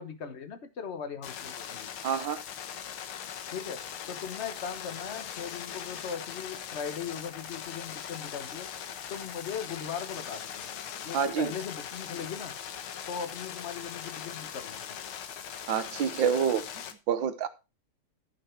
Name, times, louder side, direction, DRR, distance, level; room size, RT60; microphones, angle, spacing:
voice 1, 0.0-1.9 3.5-3.8 4.1-8.7 9.1-10.7 11.0-12.6 13.1-15.0, left 7 dB, 40° left, 9 dB, 1.2 m, -39 dB
sound 1, 1.2-16.9, left 8 dB, 75° left, 1.9 m, -40 dB
voice 2, 2.0-2.4 11.1-11.5 15.7-17.5, right 7 dB, 65° right, 11 dB, 1.6 m, -28 dB
13.5 x 5.8 x 4.5 m, 0.28 s
omnidirectional pair, 2.4 m